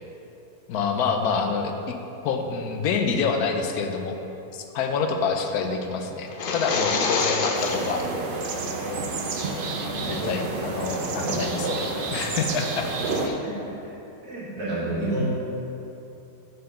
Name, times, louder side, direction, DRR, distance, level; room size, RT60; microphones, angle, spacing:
voice 1, 0.7-2.0 2.2-4.2 4.5-8.0 9.9-13.4, left 5 dB, 80° left, 5 dB, 1.1 m, -27 dB
sound 1, 6.3-8.1, left 4 dB, 50° left, 0.6 m, -26 dB
sound 2, 7.5-13.3, right 3 dB, 55° right, 0.6 m, -29 dB
voice 2, 10.0-10.7 10.9-11.4 13.1-13.9 14.2-15.3, right 1 dB, 80° right, -8 dB, 2.6 m, -31 dB
6.5 x 4.6 x 6.7 m, 2.9 s
omnidirectional pair, 1.6 m